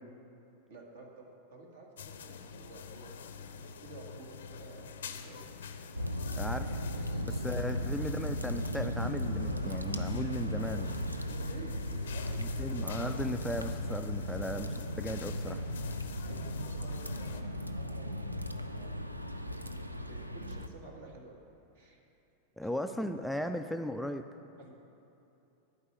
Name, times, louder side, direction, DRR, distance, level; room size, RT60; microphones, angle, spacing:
voice 1, 0.7-3.3 3.5-5.5 6.9-7.4 7.7-8.0 10.6-12.7 13.1-13.4 14.5-14.9 16.3-19.0 19.6-21.4 21.7-22.0 22.6-23.6 24.6-24.7, right 2 dB, 60° right, 0 dB, 1.6 m, -52 dB
sound 1, 2.0-17.4, left 6 dB, 65° left, 0.6 m, -47 dB
sound 2, 5.9-20.7, equal, 85° right, 0.4 m, -36 dB
voice 2, 6.3-6.8 7.3-10.9 12.4-14.7 15.0-15.6 22.6-24.2, left 1 dB, ahead, 6 dB, 0.3 m, -37 dB
11.5 x 4.8 x 8.0 m, 2.8 s
figure-of-eight pair, 90°, 0 cm